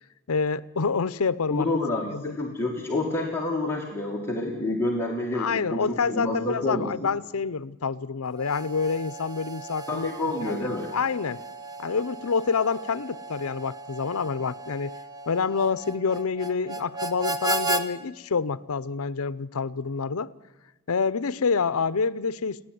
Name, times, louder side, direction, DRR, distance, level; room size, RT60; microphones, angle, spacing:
voice 1, 0.3-1.7 2.1-2.4 5.3-10.1 10.5-11.4 11.8-14.9 15.3-20.3 20.9-22.7, left 5 dB, 70° left, 0.7 m, -27 dB
voice 2, 1.5-6.9 9.9-10.9, left 2 dB, 10° left, 2.1 m, -28 dB
Harmonica, 8.3-17.9, right 2 dB, 15° right, 1.1 m, -35 dB
28.5 x 10.5 x 9.3 m
head